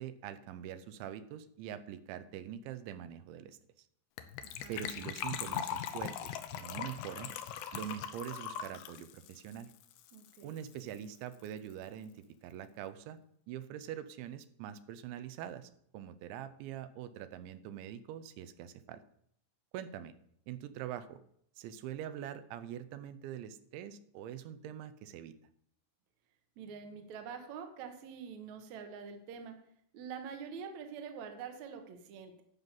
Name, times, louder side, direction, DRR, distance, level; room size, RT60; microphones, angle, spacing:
voice 1, 0.0-3.9 4.7-7.3 7.7-9.7 10.4-13.2 13.5-19.0 19.7-20.2 20.5-21.2 21.6-25.3, right 10 dB, 85° right, 12 dB, 3.1 m, -44 dB
Gurgling / Trickle dribble / Fill (with liquid), 4.2-10.4 10.7-10.8 10.9-11.2 11.5-11.6, left 9 dB, 80° left, 2.4 m, -40 dB
voice 2, 4.4-4.8 10.1-10.5 26.6-29.6 29.9-32.4, right 6 dB, 70° right, 5 dB, 1.7 m, -45 dB
11.5 x 5.5 x 7.4 m, 0.70 s
omnidirectional pair, 5.2 m